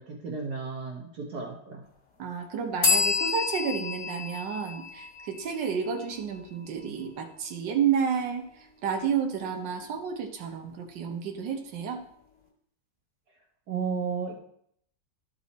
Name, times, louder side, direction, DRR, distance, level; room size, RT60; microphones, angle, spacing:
voice 1, 0.0-1.8 13.7-14.4, right 5 dB, 65° right, -2 dB, 1.6 m, -33 dB
voice 2, 2.2-12.0, right 7 dB, 90° right, 3 dB, 1.5 m, -31 dB
sound 1, 2.8-6.4, left 5 dB, 40° left, 1.9 m, -29 dB
12.0 x 4.0 x 4.1 m, 0.70 s
omnidirectional pair, 1.9 m